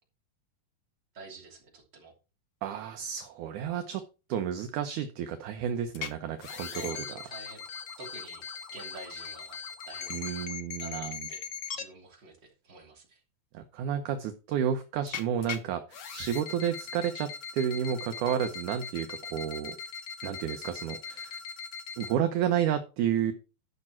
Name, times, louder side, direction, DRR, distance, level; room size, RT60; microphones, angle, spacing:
voice 1, 1.1-2.1 6.7-7.6 8.0-8.5 8.7-9.6 9.8-10.2 10.8-11.4 11.7-13.2, right 3 dB, 30° right, 0 dB, 3.2 m, -47 dB
voice 2, 2.6-4.0 4.3-7.0 10.1-11.2 13.5-15.8 16.1-19.8 20.2-21.4 22.0-23.3, right 9 dB, 70° right, 7 dB, 2.1 m, -31 dB
sound 1, 5.9-6.1 6.4-11.8 15.1-15.6 15.9-22.1, left 7 dB, 65° left, 1.1 m, -40 dB
12.0 x 6.0 x 4.5 m, 0.31 s
omnidirectional pair, 4.2 m